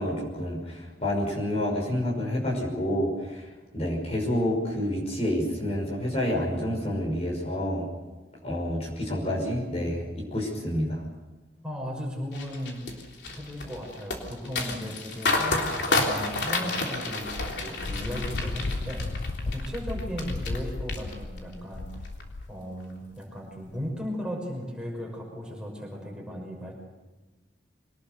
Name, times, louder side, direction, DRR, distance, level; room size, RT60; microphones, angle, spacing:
voice 1, 0.0-3.5 3.7-7.9 8.4-11.0, left 1 dB, 35° left, -2 dB, 5.8 m, -28 dB
voice 2, 11.6-12.8 13.4-21.9 22.5-26.7, equal, 5° right, -2 dB, 6.0 m, -36 dB
sound 1, 12.3-20.6 20.9-21.5 21.9-22.2, left 3 dB, 70° left, 3.5 m, -30 dB
Wind, 17.2-22.5, left 2 dB, 85° left, 0.8 m, -34 dB
24.5 x 19.0 x 6.8 m, 1.1 s
head